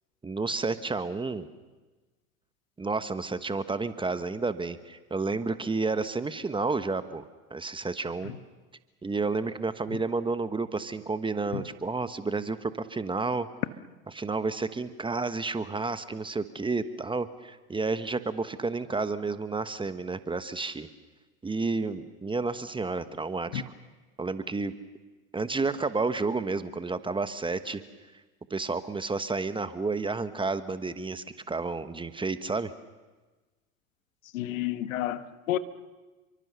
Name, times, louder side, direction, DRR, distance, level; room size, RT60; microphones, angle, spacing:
voice 1, 0.2-1.5 2.8-7.2 7.5-8.3 9.0-13.5 14.1-20.9 21.4-23.6 24.2-24.7 25.3-27.8 28.5-32.7, right 3 dB, 10° right, 1.2 m, -31 dB
voice 2, 34.3-35.6, left 13 dB, 65° left, 1.5 m, -31 dB
29.5 x 23.5 x 6.9 m
hypercardioid pair, 90°, 42 cm